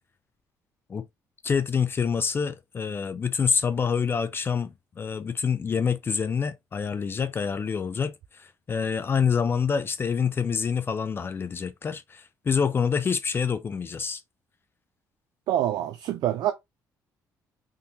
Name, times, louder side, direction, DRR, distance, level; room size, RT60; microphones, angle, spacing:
voice 1, 1.4-14.2, left 6 dB, 35° left, 0.4 m, -27 dB
voice 2, 15.5-16.5, right 12 dB, 75° right, 0.4 m, -26 dB
3.6 x 2.8 x 2.7 m
cardioid pair, 100°, 7 cm